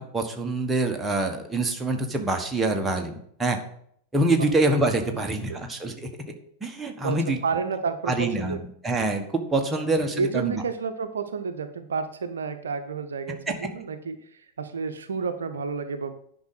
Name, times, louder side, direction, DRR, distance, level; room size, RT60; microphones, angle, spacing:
voice 1, 0.0-3.6 4.1-6.1 6.6-7.4 8.1-8.6 8.8-10.6, right 2 dB, 10° right, 2 dB, 1.5 m, -25 dB
voice 2, 7.4-8.6 9.8-9.9 10.1-16.1, right 5 dB, 65° right, 8 dB, 0.7 m, -30 dB
10.5 x 5.4 x 5.7 m, 0.67 s
figure-of-eight pair, 90°, 0 cm